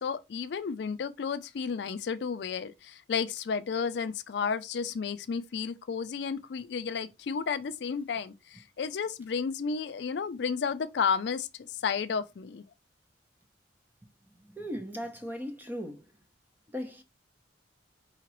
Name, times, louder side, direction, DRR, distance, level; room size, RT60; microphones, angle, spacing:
voice 1, 0.0-11.5 11.8-12.6, left 6 dB, 60° left, 0.4 m, -32 dB
voice 2, 14.4-16.1 16.7-17.0, equal, 10° right, 0.6 m, -37 dB
4.9 x 2.9 x 3.0 m
head